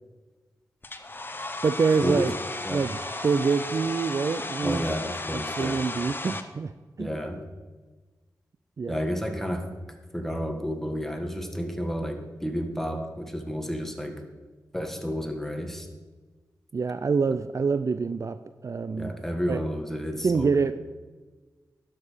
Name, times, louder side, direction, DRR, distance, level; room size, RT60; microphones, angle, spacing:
Domestic sounds home sounds, 0.8-6.4, left 2 dB, 30° left, 0.8 m, -34 dB
voice 1, 1.6-2.3 2.7-3.0 3.2-4.8 5.6-6.7 7.0-7.1 8.8-9.0 16.7-18.4 18.6-19.1 19.5-19.6 20.2-20.7, right 5 dB, 45° right, 12 dB, 0.4 m, -25 dB
voice 2, 4.6-5.8 7.0-7.4 8.9-9.7 10.1-14.2 14.7-15.9 18.9-20.6, equal, 5° left, 5 dB, 1.5 m, -31 dB
11.5 x 6.5 x 5.1 m, 1.3 s
cardioid pair, 60°, 7 cm